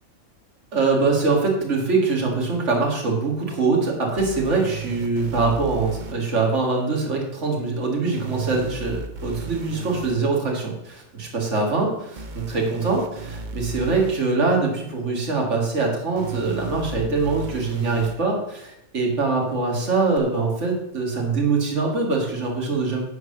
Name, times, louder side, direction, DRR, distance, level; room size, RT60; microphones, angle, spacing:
voice 1, 0.7-23.0, right 3 dB, 60° right, 0 dB, 2.3 m, -23 dB
sound 1, 4.2-6.1 8.2-10.2 12.2-14.1 16.2-18.2 20.2-20.3, right 5 dB, 40° right, 0.8 m, -34 dB
10.5 x 4.7 x 6.7 m, 0.80 s
omnidirectional pair, 1.4 m